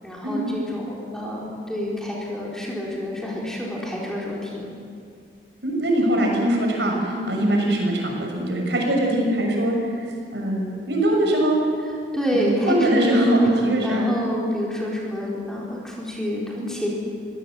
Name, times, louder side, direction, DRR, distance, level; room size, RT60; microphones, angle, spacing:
voice 1, 0.0-4.7 7.1-7.4 12.1-13.5 13.8-16.9, equal, 5° left, -4 dB, 4.4 m, -28 dB
voice 2, 5.6-9.7 10.3-11.6 12.5-14.1, right 1 dB, 75° right, 0 dB, 6.4 m, -22 dB
24.5 x 17.5 x 8.0 m, 2.2 s
head